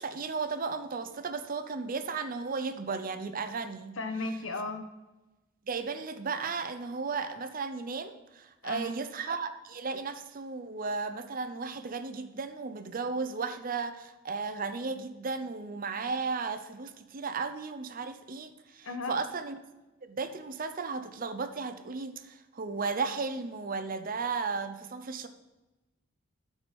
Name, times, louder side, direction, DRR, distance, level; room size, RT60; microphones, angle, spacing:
voice 1, 0.0-3.9 5.7-19.6 20.0-25.3, right 4 dB, 45° right, 9 dB, 0.7 m, -35 dB
voice 2, 4.0-4.9 8.6-9.0 18.8-19.2, left 2 dB, 85° left, 6 dB, 1.1 m, -35 dB
12.5 x 4.7 x 5.3 m, 1.1 s
head